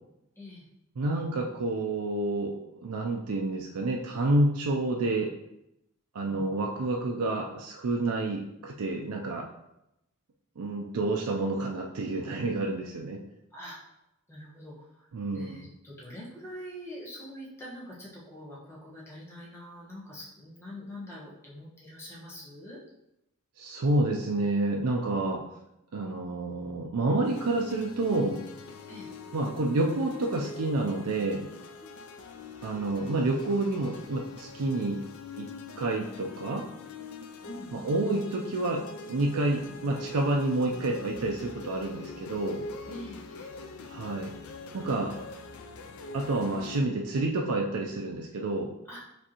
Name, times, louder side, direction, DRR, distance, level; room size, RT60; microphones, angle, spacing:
voice 1, 1.0-5.3 6.1-9.5 10.6-13.2 15.1-15.7 23.6-25.4 25.9-28.4 29.3-31.5 32.6-35.0 35.4-35.5 35.8-36.6 37.7-42.6 43.9-44.3 44.7-45.1 46.1-48.7, right 2 dB, 85° right, 0 dB, 0.5 m, -29 dB
voice 2, 14.3-15.1 15.3-22.8 28.9-29.1 37.5-37.7 42.9-43.5 48.8-49.0, equal, 10° left, -7 dB, 1.2 m, -44 dB
sound 1, 27.2-46.8, left 3 dB, 70° left, 0.4 m, -43 dB
5.1 x 3.5 x 2.9 m, 0.86 s
head